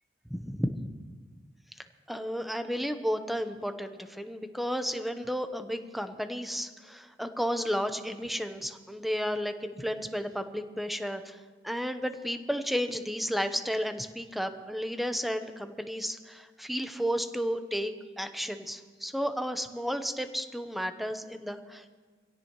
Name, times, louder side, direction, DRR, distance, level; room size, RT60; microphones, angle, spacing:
voice 1, 0.3-0.9 2.1-21.9, equal, ahead, 7 dB, 0.9 m, -33 dB
25.5 x 17.0 x 3.1 m, 1.4 s
head